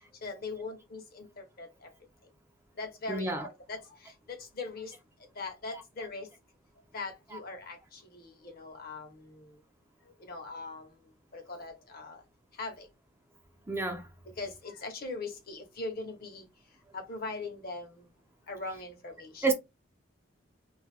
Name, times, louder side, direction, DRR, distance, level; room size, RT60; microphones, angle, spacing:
voice 1, 0.2-1.9 2.8-4.9 5.4-6.3 6.9-9.6 10.2-10.9 11.3-12.2 12.6-12.9 14.4-16.4 16.9-18.0 18.5-19.5, left 3 dB, 55° left, 0.8 m, -41 dB
voice 2, 3.1-3.5 5.7-5.8 7.3-7.4 13.7-14.1 19.4-19.5, right 4 dB, 15° right, 0.4 m, -29 dB
2.6 x 2.3 x 3.3 m
head